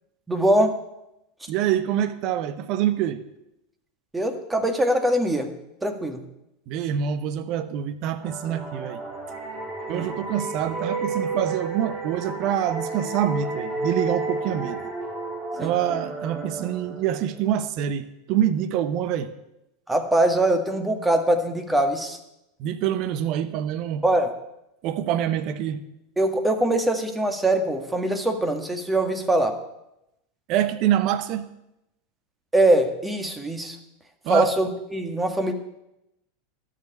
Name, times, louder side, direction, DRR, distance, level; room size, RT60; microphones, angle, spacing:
voice 1, 0.3-0.8 4.1-5.5 5.8-6.2 9.9-10.1 15.6-15.7 19.9-22.2 24.0-24.3 26.2-29.6 32.5-33.8 34.3-35.5, right 1 dB, 10° right, 6 dB, 1.8 m, -22 dB
voice 2, 1.5-3.2 6.7-9.0 9.9-14.8 15.6-19.3 22.6-24.0 24.8-25.8 30.5-31.5 34.2-34.5, right 10 dB, 50° right, 12 dB, 0.9 m, -26 dB
sound 1, 8.2-17.6, right 3 dB, 25° right, 3.6 m, -32 dB
12.5 x 6.9 x 8.4 m, 0.87 s
hypercardioid pair, 85°, 0 cm